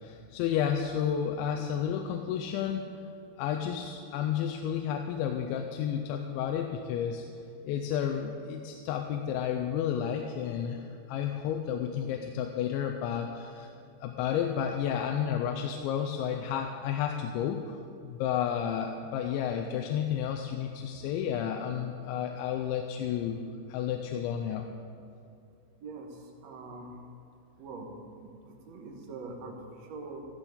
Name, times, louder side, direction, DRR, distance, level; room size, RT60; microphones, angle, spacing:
voice 1, 0.0-2.9 3.4-7.2 7.6-13.7 14.0-23.4 23.7-24.7, left 8 dB, 85° left, 4 dB, 3.0 m, -31 dB
voice 2, 25.8-26.9 27.6-27.9 28.1-30.2, right 3 dB, 65° right, 0 dB, 1.7 m, -43 dB
13.5 x 13.5 x 5.2 m, 2.5 s
omnidirectional pair, 5.2 m